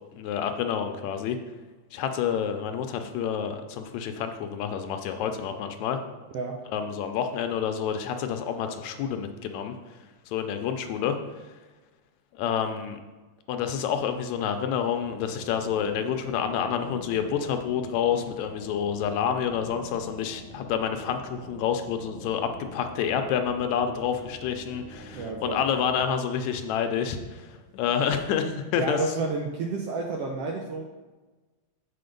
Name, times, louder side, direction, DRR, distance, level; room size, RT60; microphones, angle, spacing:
voice 1, 0.1-1.4 1.9-6.0 6.7-9.8 10.3-11.4 12.3-13.0 13.5-29.0, left 8 dB, 80° left, 6 dB, 1.9 m, -28 dB
sound 1, 15.0-26.0, equal, 50° right, 2.0 m, -46 dB
voice 2, 25.1-25.6 28.8-30.8, right 3 dB, 75° right, 1 dB, 1.4 m, -30 dB
7.6 x 4.4 x 5.1 m, 1.2 s
omnidirectional pair, 3.4 m